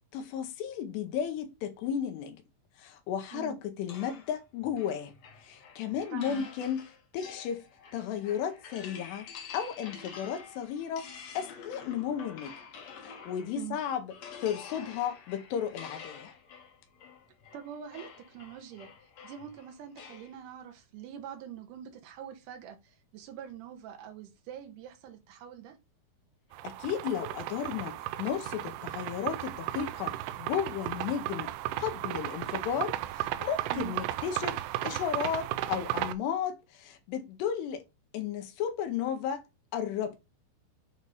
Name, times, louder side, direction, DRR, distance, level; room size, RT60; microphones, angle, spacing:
voice 1, 0.1-2.4 2.8-5.1 5.4-6.9 7.1-7.6 7.9-9.3 9.5-11.1 11.3-12.6 13.0-14.1 14.4-16.4 26.6-31.5 31.8-37.8 38.1-39.4 39.7-40.2, left 8 dB, 85° left, 3.1 m, -34 dB
sound 1, 3.9-13.7 14.1-20.3, left 6 dB, 70° left, 1.7 m, -48 dB
voice 2, 6.1-6.5 13.6-13.8 17.5-18.9 19.2-25.8 33.7-34.0, right 10 dB, 70° right, 2.1 m, -44 dB
sound 2, 26.5-36.1, right 14 dB, 85° right, 2.7 m, -35 dB
8.0 x 2.8 x 4.8 m
omnidirectional pair, 4.8 m